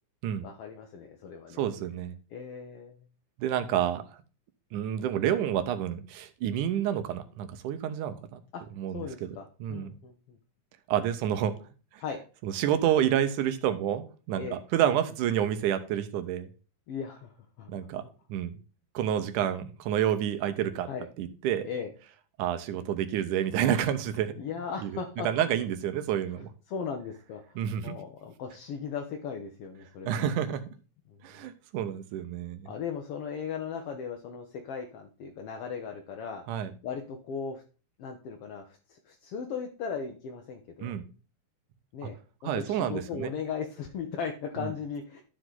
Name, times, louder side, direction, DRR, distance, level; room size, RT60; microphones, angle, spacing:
voice 1, 0.4-1.6 2.3-3.0 3.7-3.9 8.5-8.6 8.9-10.4 12.0-12.2 14.4-14.6 16.9-17.3 17.6-18.1 20.9-21.1 21.6-21.9 24.4-25.3 26.4-30.3 31.1-31.2 32.6-36.4 36.8-37.6 38.0-40.9 41.9-42.2 42.4-45.2, left 6 dB, 65° left, 3 dB, 1.5 m, -37 dB
voice 2, 1.6-2.2 3.4-4.0 4.7-8.4 8.8-9.4 9.6-9.9 10.9-11.5 12.4-16.5 17.7-18.0 18.3-18.6 18.9-20.9 21.2-21.7 22.4-24.3 24.8-24.9 25.2-26.5 27.6-28.0 30.0-30.6 31.2-32.7 36.5-36.7 40.8-41.0 42.4-43.3 44.6-44.7, right 10 dB, 90° right, 10 dB, 2.3 m, -29 dB
12.5 x 5.0 x 3.9 m, 0.36 s
omnidirectional pair, 3.5 m